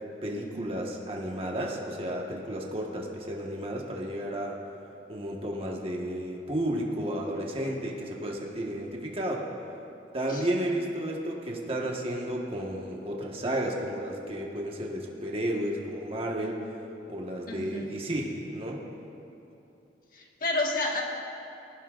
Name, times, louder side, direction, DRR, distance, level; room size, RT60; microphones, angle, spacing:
voice 1, 0.2-4.6 5.1-9.4 10.1-16.6 17.1-18.8, right 1 dB, 35° right, -1 dB, 1.4 m, -32 dB
voice 2, 17.5-18.0 20.1-21.0, left 2 dB, 50° left, 0 dB, 1.6 m, -30 dB
20.0 x 15.0 x 2.5 m, 2.9 s
head